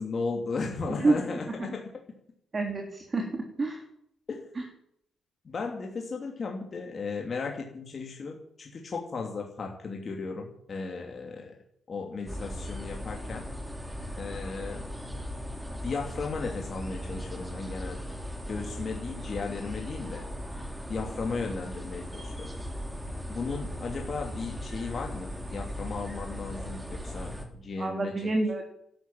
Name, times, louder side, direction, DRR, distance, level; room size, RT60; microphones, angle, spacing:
voice 1, 0.0-1.8 4.3-4.5 5.4-11.5 11.9-13.5 14.2-14.9 15.8-18.2 18.5-20.2 20.9-22.5 23.3-28.3, left 4 dB, 40° left, 1 dB, 3.0 m, -35 dB
voice 2, 2.5-3.3 3.6-3.8 27.8-28.6, right 3 dB, 30° right, 3 dB, 3.3 m, -27 dB
sound 1, 12.3-27.4, equal, 10° right, 3.3 m, -38 dB
12.0 x 12.0 x 9.1 m, 0.73 s
cardioid pair, 90°, 0 cm